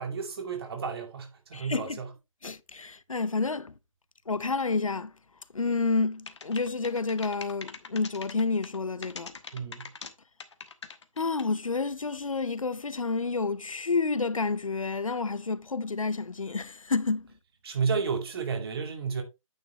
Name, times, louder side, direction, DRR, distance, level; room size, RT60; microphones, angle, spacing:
voice 1, 0.0-2.1 9.5-9.9 17.6-19.2, right 5 dB, 45° right, 2.4 m, -32 dB
voice 2, 1.5-2.0 2.4-3.7 4.3-5.1 5.5-9.4 11.2-17.3, left 4 dB, 75° left, 0.8 m, -29 dB
sound 1, 6.3-8.8 9.0-10.1 10.4-11.6, left 5 dB, 55° left, 1.2 m, -42 dB
9.0 x 6.6 x 3.1 m
figure-of-eight pair, 140°, 17 cm